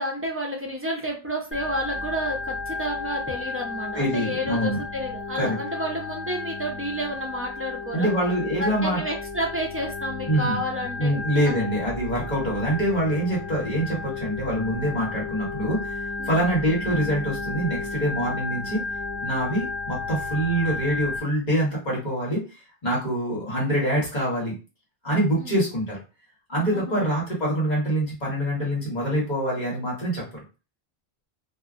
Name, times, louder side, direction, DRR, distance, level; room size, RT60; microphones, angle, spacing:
voice 1, 0.0-8.1 8.6-11.1 11.4-11.7 16.2-16.4 25.4-25.6 26.7-27.0, equal, 15° right, -1 dB, 0.5 m, -30 dB
Organ, 1.5-21.2, left 3 dB, 90° left, 1.1 m, -33 dB
voice 2, 3.9-4.8 5.3-5.6 7.9-9.0 10.3-10.6 11.0-18.8 19.2-22.4 22.8-24.5 25.0-26.0 26.5-30.4, right 1 dB, 45° left, -5 dB, 1.3 m, -25 dB
2.6 x 2.4 x 2.4 m, 0.32 s
omnidirectional pair, 1.1 m